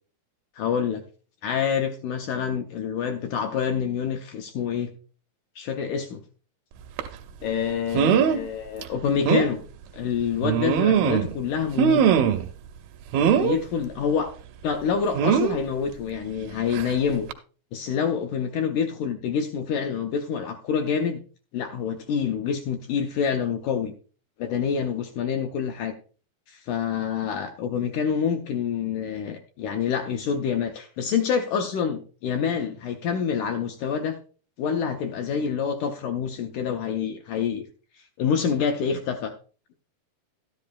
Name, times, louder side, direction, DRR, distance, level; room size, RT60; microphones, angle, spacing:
voice 1, 0.6-1.0 1.4-4.9 5.6-6.2 7.4-9.6 9.9-12.0 13.3-14.3 14.6-17.3 17.7-21.2 21.5-23.9 24.4-25.9 26.5-34.2 34.6-37.7 38.2-39.3, left 7 dB, 80° left, 6 dB, 1.8 m, -27 dB
sound 1, 7.0-7.1 7.9-8.4 8.8-8.9 9.2-9.5 10.4-11.3 11.8-12.5 13.1-13.6 15.1-15.6 16.7-16.9 17.3-17.4, right 8 dB, 85° right, 2.5 m, -21 dB
13.0 x 10.5 x 2.3 m, 0.38 s
omnidirectional pair, 4.2 m